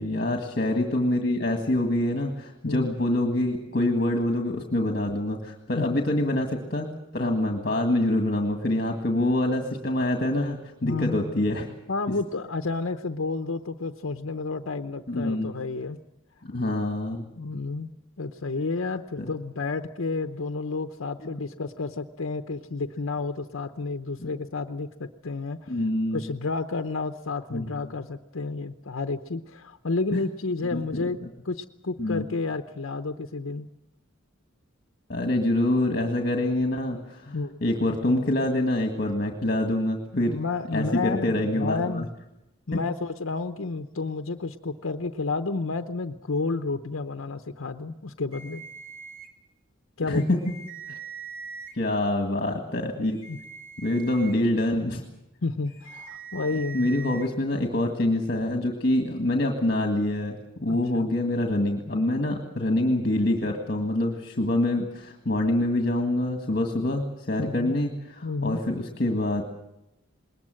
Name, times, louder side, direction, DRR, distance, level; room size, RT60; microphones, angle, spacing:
voice 1, 0.0-11.7 15.1-15.5 16.5-17.2 19.2-19.3 24.2-24.3 25.7-26.2 27.5-27.6 30.1-30.2 30.7-31.0 32.0-32.2 35.1-40.4 40.7-42.0 50.1-50.4 50.9-51.0 51.8-53.2 53.8-55.0 56.7-69.4, left 1 dB, 50° left, 3 dB, 1.8 m, -26 dB
voice 2, 2.6-2.9 5.7-6.0 10.8-11.4 11.9-16.0 17.4-17.9 18.2-25.7 26.1-31.2 31.4-33.7 37.3-37.6 40.2-42.1 42.7-48.6 50.0-50.3 53.3-53.4 55.4-57.0 60.7-61.1 67.4-67.7 68.2-68.6, left 3 dB, 90° left, 7 dB, 0.8 m, -31 dB
sound 1, 48.3-49.3 50.1-51.7 53.0-54.3 55.7-57.3, right 6 dB, 80° right, 3.0 m, -42 dB
21.0 x 19.5 x 7.8 m, 0.88 s
head